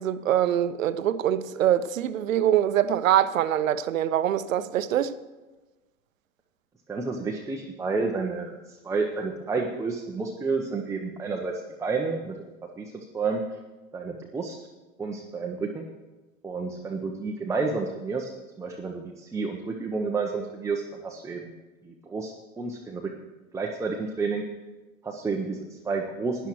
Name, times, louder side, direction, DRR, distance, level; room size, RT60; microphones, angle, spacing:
voice 1, 0.0-5.1, right 11 dB, 70° right, 0.7 m, -24 dB
voice 2, 6.9-12.3 12.8-13.4 13.9-14.6 15.0-15.9 16.4-21.6 21.8-23.1 23.5-24.4 25.0-26.5, right 4 dB, 5° right, 0.7 m, -30 dB
17.0 x 10.5 x 3.1 m
figure-of-eight pair, 95°, 41 cm